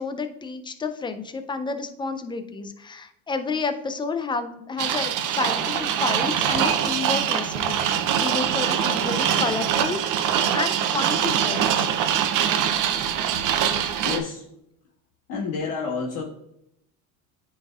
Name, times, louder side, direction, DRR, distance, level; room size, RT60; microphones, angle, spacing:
voice 1, 0.0-11.9, left 4 dB, 10° left, 9 dB, 0.4 m, -30 dB
sound 1, 4.8-14.2, right 9 dB, 45° right, 0.6 m, -23 dB
voice 2, 13.3-14.5 15.3-16.2, left 5 dB, 70° left, -8 dB, 1.8 m, -31 dB
9.4 x 4.1 x 2.4 m, 0.79 s
supercardioid pair, 105°, 43 cm